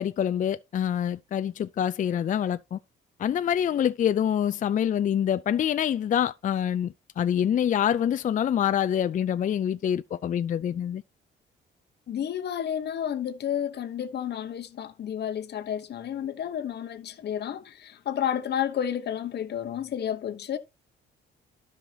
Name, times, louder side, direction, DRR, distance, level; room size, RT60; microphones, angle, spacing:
voice 1, 0.0-2.8 3.2-11.0, left 9 dB, 40° left, 0.4 m, -26 dB
voice 2, 12.1-20.6, left 9 dB, 55° left, 1.0 m, -31 dB
12.0 x 5.6 x 2.8 m
cardioid pair, 90°, 20 cm